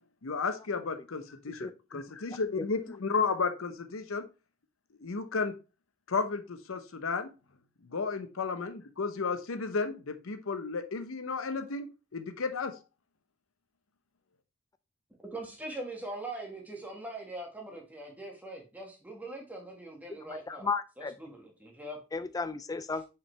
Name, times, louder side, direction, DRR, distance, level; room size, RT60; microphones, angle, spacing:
voice 1, 0.2-1.7 1.9-4.3 5.0-5.5 6.1-7.3 7.9-11.9 12.1-12.8, left 4 dB, 70° left, 0.8 m, -33 dB
voice 2, 1.6-2.0 2.6-3.0 20.1-20.2 20.5-21.3 22.1-23.1, left 4 dB, 15° left, 0.3 m, -35 dB
voice 3, 15.3-20.7 21.0-22.0, right 1 dB, 10° right, 1.5 m, -42 dB
5.8 x 5.0 x 3.2 m
head